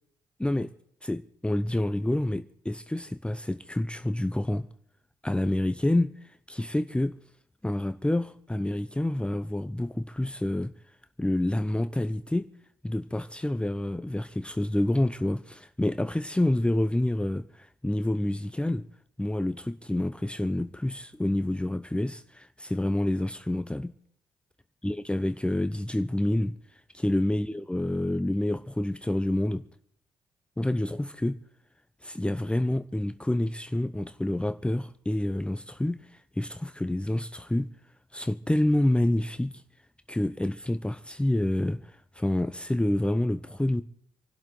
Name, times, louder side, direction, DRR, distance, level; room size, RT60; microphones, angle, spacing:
voice 1, 0.4-0.7 1.0-4.7 5.2-7.2 7.6-10.7 11.2-12.5 12.8-18.8 19.2-23.9 24.8-26.6 26.9-29.7 30.6-31.4 32.0-36.0 36.4-37.7 38.1-39.6 40.1-43.8, left 1 dB, 10° left, 1.0 m, -28 dB
27.5 x 12.0 x 3.9 m
hypercardioid pair, 45°, 11 cm